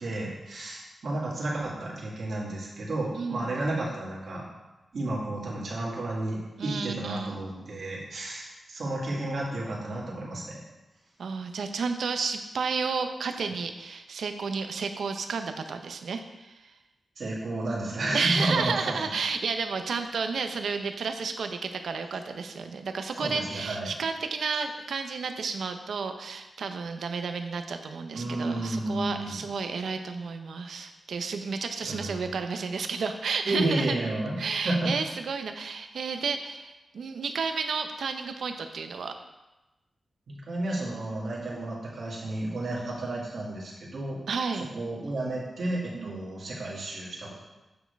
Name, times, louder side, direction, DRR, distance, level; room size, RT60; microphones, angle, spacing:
voice 1, 0.0-4.5 4.9-10.6 17.2-19.0 23.2-23.9 28.1-29.4 31.8-32.3 33.4-34.4 34.6-34.9 40.3-44.2 44.7-47.3, right 2 dB, 65° right, -4 dB, 2.1 m, -32 dB
voice 2, 3.2-3.5 6.6-7.4 11.2-16.7 18.1-33.9 34.4-39.1 44.3-44.7 45.9-46.2, right 5 dB, 80° right, 7 dB, 0.6 m, -32 dB
8.7 x 6.1 x 3.4 m, 1.0 s
wide cardioid pair, 125°, 0 cm